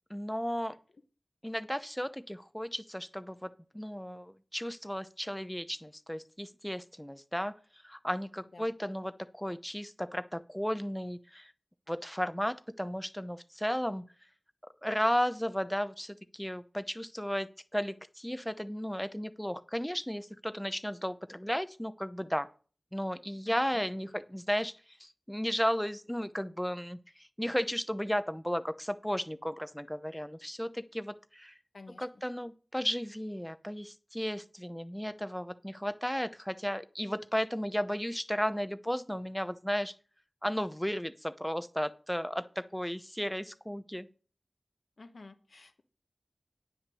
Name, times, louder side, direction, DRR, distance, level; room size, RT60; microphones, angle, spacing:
voice 1, 0.1-0.7 1.4-7.5 7.8-11.5 11.9-14.0 14.8-22.5 22.9-24.7 25.0-31.6 32.0-39.9 40.4-44.1, equal, 5° left, 12 dB, 0.7 m, -34 dB
voice 2, 23.4-23.8 31.7-32.0 45.0-45.8, left 3 dB, 80° left, 8 dB, 1.1 m, -51 dB
9.7 x 5.9 x 6.9 m, 0.40 s
wide cardioid pair, 50°, 0 cm